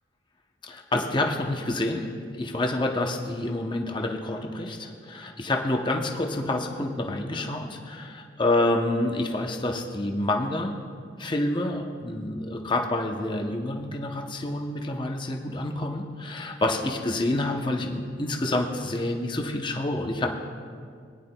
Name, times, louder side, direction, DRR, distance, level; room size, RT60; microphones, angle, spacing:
voice 1, 0.6-2.1 2.3-10.7 11.2-20.3, left 2 dB, 25° left, 2 dB, 0.7 m, -28 dB
19.5 x 10.5 x 2.2 m, 2.1 s
head